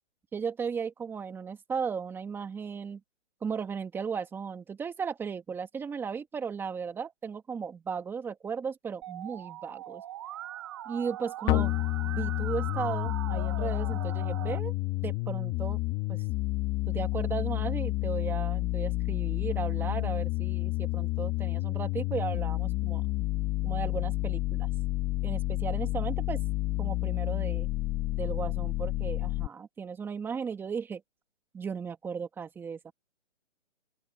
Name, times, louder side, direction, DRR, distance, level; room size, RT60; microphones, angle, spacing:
voice 1, 0.3-3.0 3.4-10.0 10.9-14.7 15.0-15.8 16.1-16.2 16.9-23.0 23.6-24.7 25.2-26.4 26.8-27.7 28.2-31.0 31.5-32.9, right 6 dB, 5° right, 1.9 m, -36 dB
Musical instrument, 9.0-14.6, right 13 dB, 20° right, 1.0 m, -40 dB
sound 1, 11.5-29.5, left 18 dB, 15° left, 1.5 m, -30 dB
open air
hypercardioid pair, 155°, 37 cm